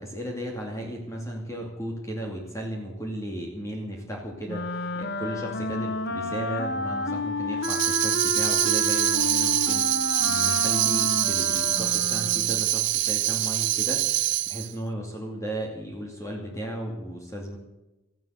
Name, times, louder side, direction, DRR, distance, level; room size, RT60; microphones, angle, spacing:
voice 1, 0.0-14.0 14.5-17.6, right 1 dB, 15° left, 0 dB, 2.4 m, -35 dB
Wind instrument woodwind instrument, 4.5-12.7, left 3 dB, 55° left, 1.3 m, -30 dB
Tambourine, 7.6-14.7, right 15 dB, 60° right, 0.6 m, -24 dB
14.5 x 11.0 x 8.0 m, 1.0 s
head